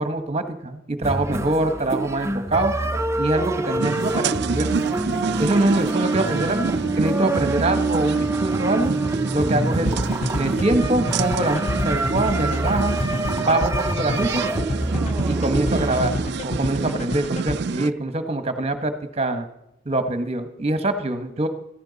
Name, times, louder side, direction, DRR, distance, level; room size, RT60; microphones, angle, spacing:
voice 1, 0.0-2.7 3.2-4.7 5.4-8.9 9.3-12.9 13.4-14.4 15.2-16.1 16.4-19.5 19.8-21.5, right 2 dB, 35° right, 9 dB, 1.3 m, -24 dB
sound 1, 1.0-16.3, right 2 dB, 15° right, 0.6 m, -26 dB
sound 2, 3.8-17.9, right 5 dB, 60° right, 0.4 m, -29 dB
sound 3, 9.9-17.6, left 1 dB, 35° left, 0.7 m, -28 dB
16.0 x 14.5 x 4.1 m, 0.86 s
head